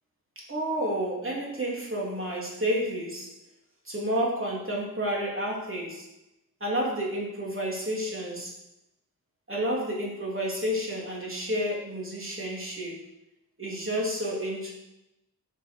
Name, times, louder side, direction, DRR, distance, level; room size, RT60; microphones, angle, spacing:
voice 1, 0.3-3.4 3.8-6.0 6.6-8.5 9.5-13.0 13.6-14.7, equal, 35° right, -3 dB, 3.3 m, -30 dB
8.3 x 6.8 x 6.5 m, 0.87 s
wide cardioid pair, 100°, 38 cm